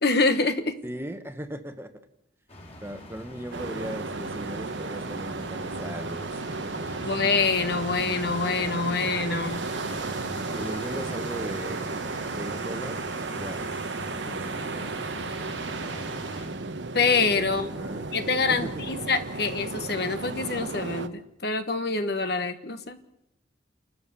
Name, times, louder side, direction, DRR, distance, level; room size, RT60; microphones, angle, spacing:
voice 1, 0.0-0.8 7.0-9.6 16.9-17.7 18.1-23.0, left 4 dB, 60° left, 9 dB, 1.4 m, -26 dB
voice 2, 0.8-2.1 2.8-7.1 10.2-12.0 12.4-13.7 14.2-14.9 17.4-18.2 18.5-19.0, right 1 dB, 10° right, 8 dB, 1.2 m, -38 dB
sound 1, 2.5-16.5, left 1 dB, 35° left, 3.6 m, -43 dB
sound 2, 3.5-21.1, right 3 dB, 75° right, 1.1 m, -34 dB
30.0 x 12.5 x 7.0 m, 0.84 s
head